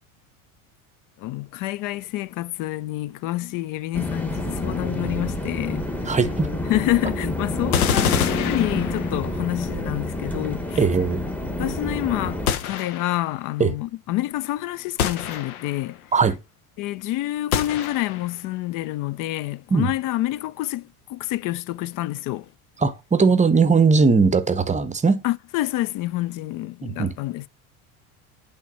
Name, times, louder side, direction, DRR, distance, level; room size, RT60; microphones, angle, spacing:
voice 1, 1.2-5.9 6.7-10.8 11.6-16.0 16.8-22.5 25.2-27.5, left 16 dB, 50° left, 0.5 m, -28 dB
sound 1, 3.9-12.5, left 1 dB, 5° left, 1.1 m, -28 dB
voice 2, 6.1-6.5 10.8-11.2 13.6-13.7 16.1-16.4 19.7-19.9 22.8-25.2 26.8-27.1, right 5 dB, 15° right, 0.7 m, -19 dB
sound 2, 7.7-9.4 12.5-13.3 15.0-15.9 17.5-18.4, left 8 dB, 85° left, 0.9 m, -26 dB
8.2 x 3.5 x 5.4 m
hypercardioid pair, 85°, 42 cm